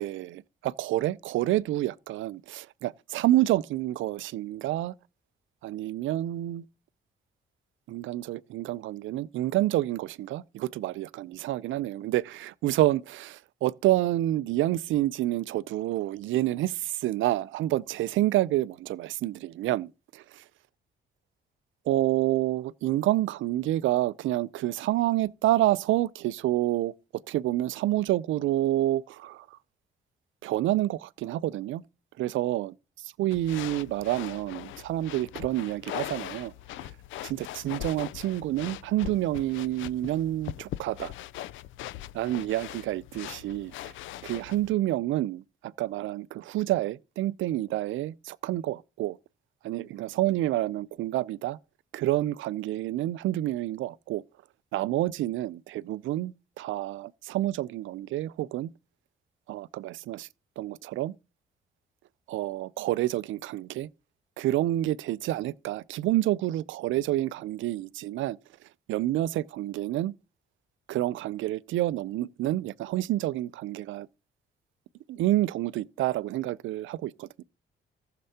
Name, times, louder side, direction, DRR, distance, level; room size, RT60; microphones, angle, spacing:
voice 1, 0.0-4.9 5.6-6.6 7.9-20.4 21.9-26.9 27.3-29.6 30.4-31.8 32.2-36.5 36.8-36.9 37.2-41.1 42.1-43.9 44.2-49.2 49.6-51.6 51.9-54.2 54.7-58.7 59.5-60.3 60.6-61.1 62.3-63.9 64.4-68.4 68.9-70.1 70.9-74.1 75.1-77.4, right 15 dB, 75° right, 0.5 m, -28 dB
sound 1, 33.3-44.7, left 14 dB, 75° left, 0.4 m, -41 dB
15.0 x 6.7 x 2.8 m
cardioid pair, 90°, 20 cm